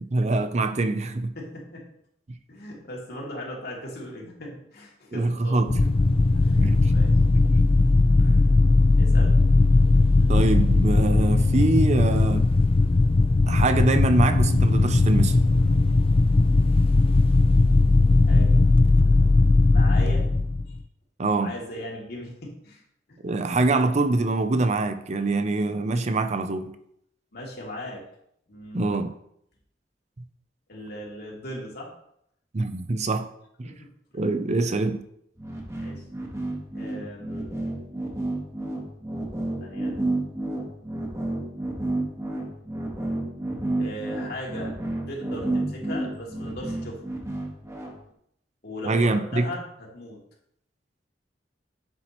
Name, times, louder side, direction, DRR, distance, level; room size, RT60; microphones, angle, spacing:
voice 1, 0.1-1.3 5.1-5.8 6.6-6.9 10.3-12.4 13.5-15.3 21.2-21.5 23.2-26.7 28.7-29.1 32.5-33.3 33.6-33.7 34.1-35.0 48.9-49.5, right 2 dB, 40° right, 9 dB, 0.6 m, -24 dB
voice 2, 1.3-1.8 2.5-5.7 6.4-6.6 6.9-7.2 8.2-8.5 8.9-9.4 18.2-18.6 19.7-20.3 21.4-22.8 23.1-23.2 27.3-28.0 28.5-28.9 30.7-31.9 33.6-34.3 35.8-36.0 36.7-37.6 39.6-39.9 43.8-44.7 45.1-47.0 48.6-49.7 49.9-50.2, left 1 dB, 60° left, -3 dB, 2.7 m, -38 dB
sound 1, 5.7-20.8, left 3 dB, 30° left, 0.4 m, -19 dB
sound 2, 35.4-47.9, right 2 dB, 15° right, 1.5 m, -30 dB
10.5 x 7.4 x 3.1 m, 0.73 s
head